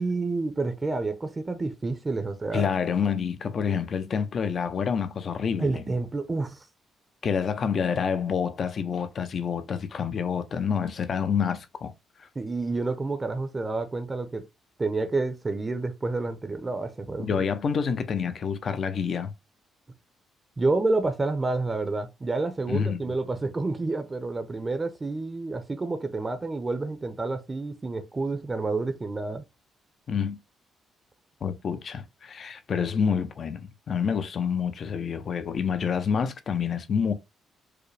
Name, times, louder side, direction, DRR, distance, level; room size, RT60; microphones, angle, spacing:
voice 1, 0.0-2.7 5.6-6.6 12.4-14.4 14.8-17.4 20.6-29.4, right 3 dB, 25° right, 0.6 m, -29 dB
voice 2, 2.5-5.8 7.2-11.9 12.2-12.3 17.2-19.3 22.7-23.0 30.1-30.4 31.4-37.1, left 6 dB, 50° left, 0.6 m, -28 dB
4.8 x 2.0 x 3.2 m
cardioid pair, 90°, 0 cm